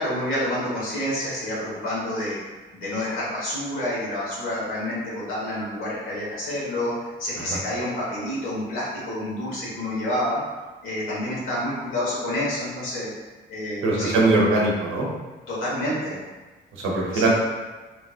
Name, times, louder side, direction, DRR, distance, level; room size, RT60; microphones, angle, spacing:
voice 1, 0.0-2.4 2.7-6.9 7.2-10.4 10.8-13.1 13.5-14.2 15.5-16.1 17.1-17.3, left 1 dB, 90° left, -7 dB, 1.3 m, -28 dB
voice 2, 13.8-15.1 16.7-17.3, right 2 dB, 85° right, -3 dB, 0.8 m, -21 dB
3.0 x 2.7 x 2.4 m, 1.2 s
cardioid pair, 90°, 20 cm